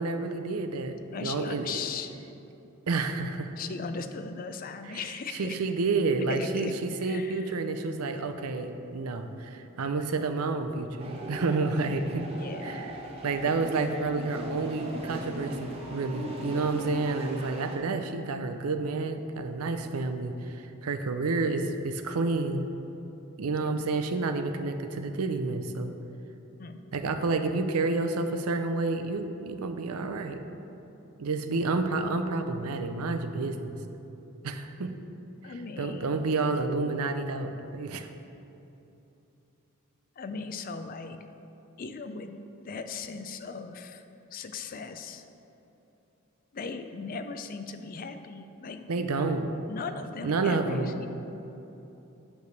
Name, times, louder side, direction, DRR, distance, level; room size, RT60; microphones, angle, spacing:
voice 1, 0.0-1.8 2.9-3.5 5.3-12.2 12.6-12.9 13.2-22.7 23.4-26.0 26.9-30.4 31.2-33.8 34.4-34.9 35.8-38.1 48.9-49.5 50.2-51.0, right 3 dB, 85° right, 8 dB, 0.5 m, -29 dB
voice 2, 1.1-2.1 3.6-5.6 6.3-6.7 7.0-7.6 12.3-12.9 23.6-23.8 26.6-26.8 35.4-36.2 40.2-41.2 41.8-42.3 42.6-44.0 44.3-45.2 46.5-49.3 49.7-51.1, left 5 dB, 40° left, 8 dB, 0.4 m, -38 dB
sound 1, 11.0-17.8, right 1 dB, 25° right, 0.9 m, -38 dB
9.2 x 3.4 x 6.6 m, 2.9 s
head